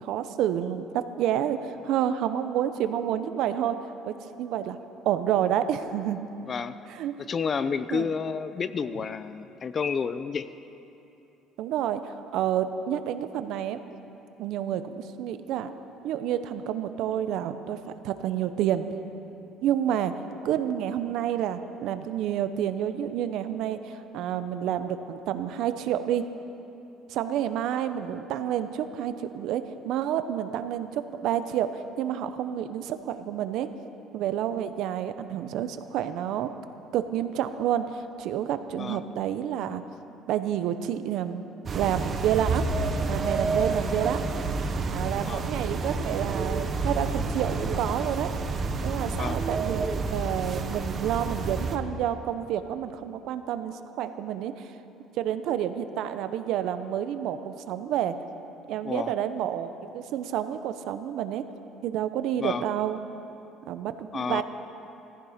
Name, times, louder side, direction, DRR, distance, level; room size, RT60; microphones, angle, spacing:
voice 1, 0.0-1.6 1.8-3.8 4.1-4.8 5.0-6.2 6.9-7.1 7.9-8.1 11.6-13.8 14.4-15.7 16.0-18.9 19.6-20.1 20.4-26.3 27.1-33.7 34.1-36.5 36.9-39.8 40.3-41.4 41.7-42.7 43.1-44.2 44.9-48.3 48.8-49.8 50.1-54.7 55.2-58.1 58.7-61.4 61.8-63.0 63.7-64.4, right 10 dB, 65° right, 10 dB, 0.8 m, -29 dB
voice 2, 6.4-6.8 7.2-10.5 38.8-39.0 45.2-45.4 49.1-49.4 58.8-59.1 62.4-62.6 64.1-64.4, left 5 dB, 30° left, 13 dB, 0.5 m, -30 dB
sound 1, 41.7-51.8, right 3 dB, 35° right, 0.9 m, -29 dB
17.0 x 15.0 x 5.0 m, 2.9 s
cardioid pair, 135°, 0 cm